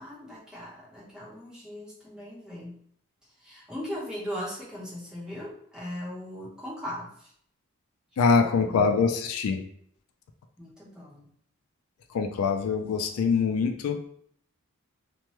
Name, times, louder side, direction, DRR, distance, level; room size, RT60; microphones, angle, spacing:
voice 1, 0.0-2.8 3.4-7.3 8.3-8.8 10.6-11.3, equal, 5° right, -7 dB, 0.8 m, -39 dB
voice 2, 8.2-9.6 12.1-14.0, left 5 dB, 75° left, 6 dB, 0.3 m, -24 dB
3.1 x 2.1 x 2.9 m, 0.65 s
head